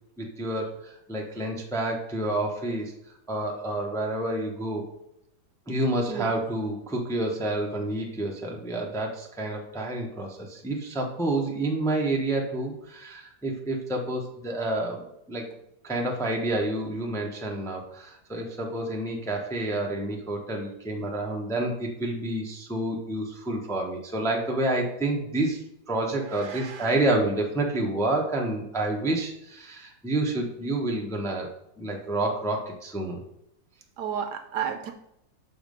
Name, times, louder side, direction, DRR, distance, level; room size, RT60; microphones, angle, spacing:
voice 1, 0.2-2.9 3.3-4.8 5.7-15.4 15.8-25.6 25.9-31.5 31.8-33.2, right 2 dB, ahead, 0 dB, 0.7 m, -29 dB
voice 2, 6.1-6.4 26.3-26.9 34.0-34.9, right 8 dB, 70° right, 7 dB, 1.1 m, -32 dB
7.0 x 4.3 x 5.3 m, 0.81 s
omnidirectional pair, 2.1 m